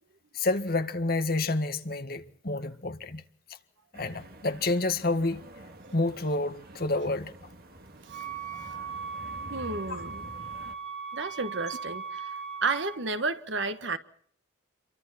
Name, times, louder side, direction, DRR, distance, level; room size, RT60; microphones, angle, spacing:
voice 1, 0.3-3.2 3.9-5.4 5.9-7.3 9.9-10.0, left 2 dB, 50° left, 1.7 m, -29 dB
sound 1, 3.9-10.7, right 1 dB, 50° right, 2.2 m, -48 dB
Wind instrument woodwind instrument, 8.1-13.0, right 6 dB, 35° right, 5.3 m, -38 dB
voice 2, 9.5-10.2 11.1-12.2 12.6-14.0, right 3 dB, 70° right, 1.5 m, -31 dB
28.0 x 24.0 x 4.3 m
head